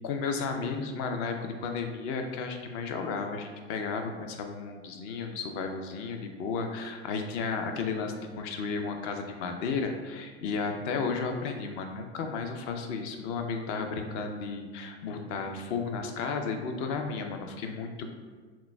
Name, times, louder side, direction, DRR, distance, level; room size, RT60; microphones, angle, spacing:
voice 1, 0.0-18.1, left 4 dB, 45° left, 4 dB, 0.5 m, -33 dB
5.8 x 2.0 x 2.2 m, 1.4 s
hypercardioid pair, 90°, 33 cm